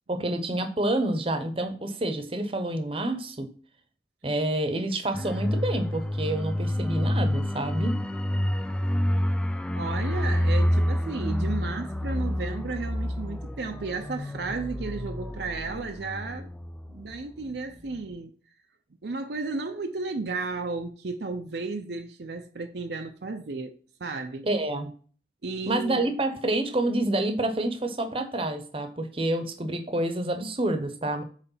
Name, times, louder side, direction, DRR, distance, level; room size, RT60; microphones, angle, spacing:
voice 1, 0.1-3.5 4.2-8.0 24.4-24.9 25.7-31.2, right 1 dB, 30° right, 0.9 m, -28 dB
sound 1, 5.1-17.5 17.8-18.0, equal, 5° left, 0.3 m, -28 dB
voice 2, 9.7-16.5 16.9-18.3 19.0-24.5 25.4-26.0, right 3 dB, 60° right, 0.6 m, -34 dB
8.2 x 3.3 x 5.5 m
head